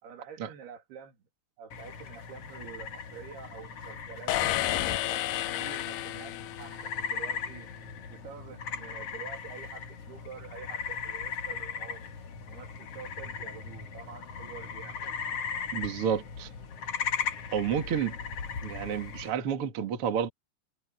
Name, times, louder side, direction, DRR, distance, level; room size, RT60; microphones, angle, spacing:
voice 1, 0.0-1.2 1.6-7.7 8.1-12.1 12.5-15.0, right 7 dB, 65° right, 4.3 m, -47 dB
sound 1, 1.7-19.3, left 6 dB, 55° left, 1.8 m, -38 dB
sound 2, 4.3-7.1, left 15 dB, 80° left, 2.3 m, -31 dB
voice 2, 15.7-16.5 17.5-18.2 18.6-20.3, right 8 dB, 50° right, 1.9 m, -30 dB
omnidirectional pair, 5.0 m